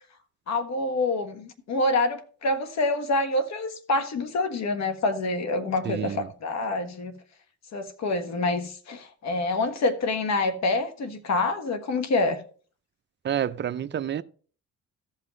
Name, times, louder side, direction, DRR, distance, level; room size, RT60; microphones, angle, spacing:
voice 1, 0.5-7.1 7.7-12.4, left 2 dB, 60° left, 1.5 m, -26 dB
voice 2, 5.9-6.2 13.2-14.2, right 9 dB, 35° right, 0.6 m, -28 dB
14.0 x 5.8 x 3.2 m
cardioid pair, 90°, 30 cm